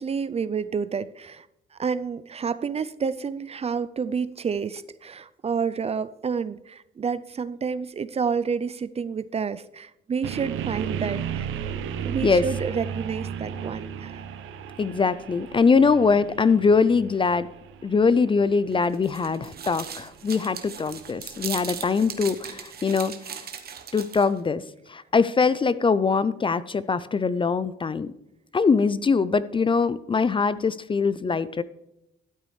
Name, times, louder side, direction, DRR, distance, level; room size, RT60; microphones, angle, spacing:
voice 1, 0.0-1.5 1.8-11.5 12.1-14.2, right 6 dB, 30° right, 15 dB, 0.4 m, -29 dB
sound 1, 10.2-22.2, right 8 dB, 85° right, 0.7 m, -35 dB
voice 2, 14.8-17.5 17.8-23.1 23.9-24.6 24.9-28.1 28.5-31.6, left 5 dB, 25° left, 16 dB, 0.4 m, -22 dB
sound 2, 18.7-24.4, right 7 dB, 50° right, 1.0 m, -38 dB
12.5 x 9.0 x 3.2 m, 0.86 s
cardioid pair, 90°, 20 cm